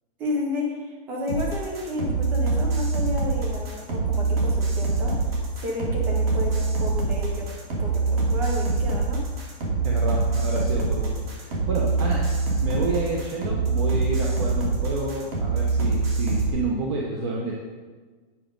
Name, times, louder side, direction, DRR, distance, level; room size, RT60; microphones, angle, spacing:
voice 1, 0.2-5.1 5.6-7.5 7.8-9.2, left 2 dB, 5° right, -1 dB, 0.4 m, -31 dB
sound 1, 1.3-16.5, right 3 dB, 70° right, 2.6 m, -24 dB
voice 2, 9.8-12.2 12.6-17.5, right 3 dB, 30° right, -2 dB, 0.8 m, -29 dB
8.3 x 4.9 x 5.1 m, 1.4 s
hypercardioid pair, 175°, 30 cm